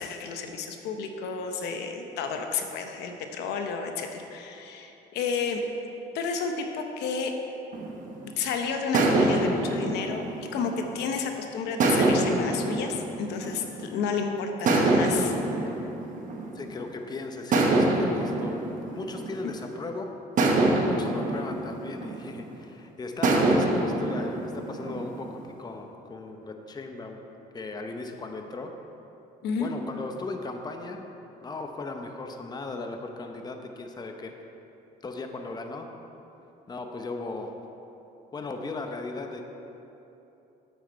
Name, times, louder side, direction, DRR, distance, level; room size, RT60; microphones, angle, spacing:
voice 1, 0.0-5.6 6.1-7.3 8.4-10.2 10.5-15.9 29.4-29.7, left 5 dB, 80° left, 5 dB, 0.9 m, -31 dB
sound 1, 7.7-8.3 8.9-11.2 11.8-14.0 14.7-16.9 17.5-19.8 20.4-22.6 23.2-25.5, right 2 dB, 50° right, 1.2 m, -26 dB
voice 2, 16.5-18.5 18.9-20.1 20.7-27.2 27.5-28.7 29.6-31.1 31.4-34.3 35.0-35.9 36.7-37.5 38.3-39.4, left 3 dB, 25° left, 4 dB, 0.8 m, -37 dB
9.0 x 8.1 x 4.5 m, 3.0 s
cardioid pair, 110°, 17 cm